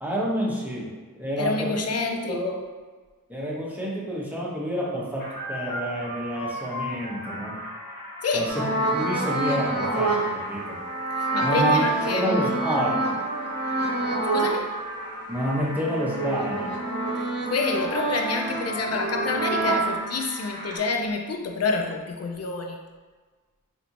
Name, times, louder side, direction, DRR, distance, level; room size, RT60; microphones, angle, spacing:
voice 1, 0.0-1.7 2.3-2.5 3.3-7.6 8.3-8.6 8.9-10.1 10.5-10.8 11.4-11.8 12.1-13.1 15.3-16.7, equal, 5° right, -5 dB, 0.9 m, -28 dB
voice 2, 1.4-2.6 8.2-8.5 11.2-12.6 14.3-14.7 17.2-22.8, left 3 dB, 50° left, 3 dB, 0.5 m, -28 dB
sound 1, 5.2-20.8, equal, 85° left, 1.2 m, -38 dB
sound 2, 8.5-14.6 15.1-19.9, right 2 dB, 45° right, 0.8 m, -27 dB
3.3 x 2.6 x 2.9 m, 1.4 s
wide cardioid pair, 40°, 33 cm